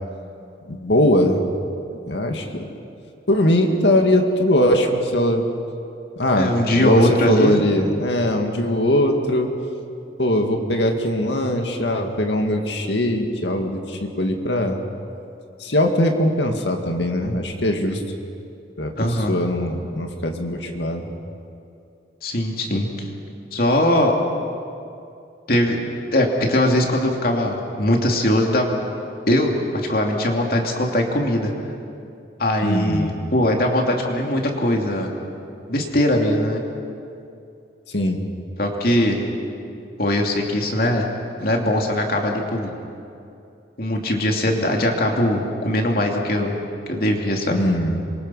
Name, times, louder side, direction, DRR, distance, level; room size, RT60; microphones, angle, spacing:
voice 1, 0.7-1.4 2.1-2.7 3.3-5.5 6.2-9.5 10.2-14.8 15.6-18.0 18.8-21.1 32.6-33.1 37.9-38.2 47.5-48.0, left 1 dB, 75° left, 3 dB, 2.2 m, -21 dB
voice 2, 6.4-7.6 19.0-19.3 22.2-22.9 23.5-24.2 25.5-25.8 26.1-28.8 29.3-31.5 32.4-35.1 35.7-36.6 38.6-39.2 40.0-41.0 41.4-42.7 43.8-46.5 46.9-47.6, left 1 dB, 55° left, 1 dB, 2.9 m, -20 dB
27.0 x 24.0 x 5.7 m, 2.6 s
head